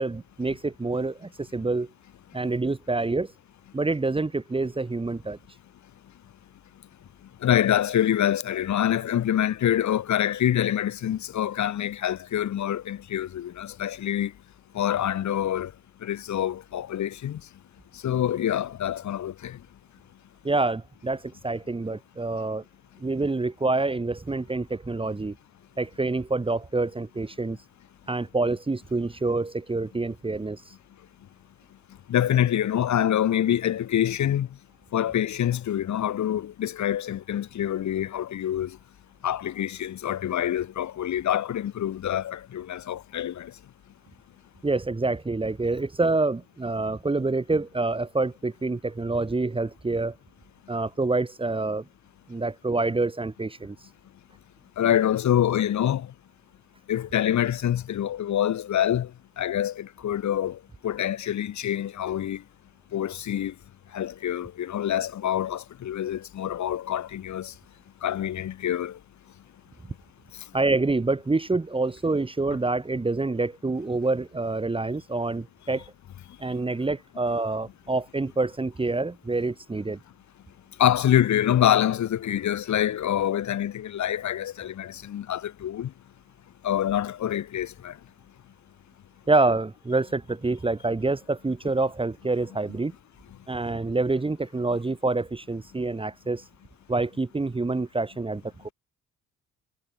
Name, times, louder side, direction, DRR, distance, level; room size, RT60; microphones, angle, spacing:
voice 1, 0.0-1.9 2.3-3.3 3.7-5.4 20.4-22.6 23.0-25.3 25.8-27.6 28.1-30.6 44.6-50.1 50.7-51.8 52.3-53.8 70.5-75.8 76.4-80.0 89.3-92.9 93.5-96.4 96.9-98.7, right 3 dB, 20° right, 1.5 m, -27 dB
voice 2, 7.4-14.3 14.7-15.7 16.0-17.4 18.0-19.6 32.1-34.5 34.9-38.8 39.2-43.5 54.8-56.1 56.9-59.1 59.4-62.4 62.9-63.5 63.9-67.5 68.0-69.0 80.8-85.9 86.6-87.9, left 11 dB, 70° left, 7.2 m, -26 dB
cardioid pair, 90°, 30 cm